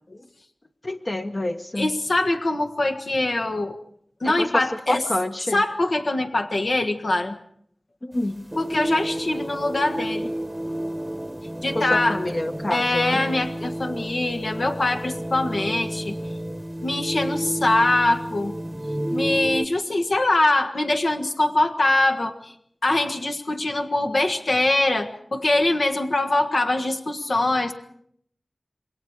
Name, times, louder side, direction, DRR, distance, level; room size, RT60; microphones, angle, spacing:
voice 1, 0.8-1.9 4.2-4.5 4.9-5.6 8.0-8.4 11.7-13.2, left 1 dB, 40° left, 4 dB, 1.2 m, -27 dB
voice 2, 1.8-3.8 4.2-5.1 5.5-7.4 8.6-10.3 11.6-12.2 12.7-16.2 16.8-18.5 19.1-22.5 22.8-27.7, left 2 dB, 70° left, 5 dB, 1.6 m, -23 dB
sound 1, 8.1-19.7, right 1 dB, 15° right, 1.1 m, -30 dB
27.5 x 22.0 x 4.8 m, 0.65 s
wide cardioid pair, 65°, 0 cm